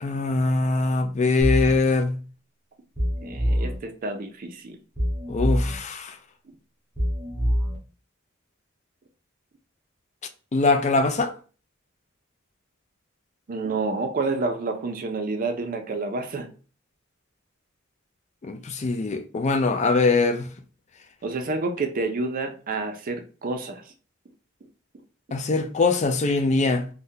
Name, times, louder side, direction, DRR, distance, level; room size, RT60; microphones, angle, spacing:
voice 1, 0.0-2.2 5.3-6.2 10.5-11.3 18.4-20.5 25.3-26.9, left 3 dB, 35° left, 0.4 m, -22 dB
sound 1, 1.4-1.8 3.0-3.8 5.0-5.8 7.0-7.8, equal, 5° right, 1.2 m, -24 dB
voice 2, 3.2-4.8 13.5-16.5 21.2-23.8, right 3 dB, 45° right, 0.4 m, -29 dB
3.5 x 2.1 x 2.7 m
head